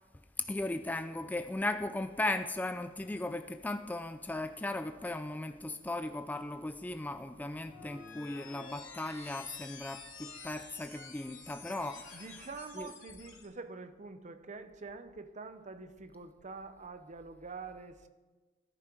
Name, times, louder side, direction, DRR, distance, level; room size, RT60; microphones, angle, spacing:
voice 1, 0.4-12.3 12.8-12.9, left 2 dB, 10° left, 8 dB, 0.3 m, -37 dB
sound 1, 7.5-13.5, left 5 dB, 80° left, 2.6 m, -50 dB
voice 2, 12.1-18.1, right 4 dB, 40° right, 10 dB, 0.7 m, -46 dB
14.5 x 10.0 x 4.6 m, 1.3 s
head